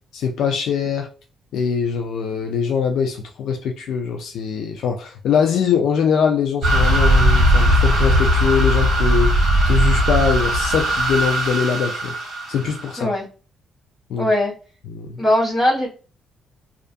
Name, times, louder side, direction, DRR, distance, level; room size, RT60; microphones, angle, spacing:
voice 1, 0.1-1.1 1.5-12.1 12.5-13.1 14.1-14.3 14.9-15.2, left 6 dB, 70° left, 2 dB, 0.4 m, -22 dB
sound 1, 6.6-13.0, equal, 55° right, 1.2 m, -18 dB
voice 2, 14.2-14.5 15.2-15.9, left 1 dB, 10° left, -6 dB, 1.3 m, -19 dB
2.5 x 2.4 x 2.4 m, 0.36 s
cardioid pair, 150°, 0 cm